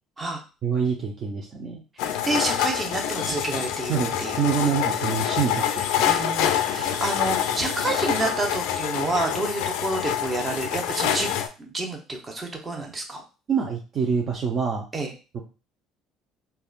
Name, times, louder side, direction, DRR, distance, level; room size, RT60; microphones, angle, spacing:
voice 1, 0.6-1.8 3.9-6.1 6.7-6.8 13.5-14.8 15.3-15.4, right 6 dB, 50° right, 0 dB, 0.6 m, -26 dB
sound 1, 2.0-11.5, left 10 dB, 75° left, 0.3 m, -26 dB
voice 2, 2.2-4.8 6.0-13.2 14.9-15.1, right 2 dB, 30° right, 2 dB, 0.9 m, -29 dB
3.5 x 2.3 x 2.4 m, 0.33 s
hypercardioid pair, 70°, 0 cm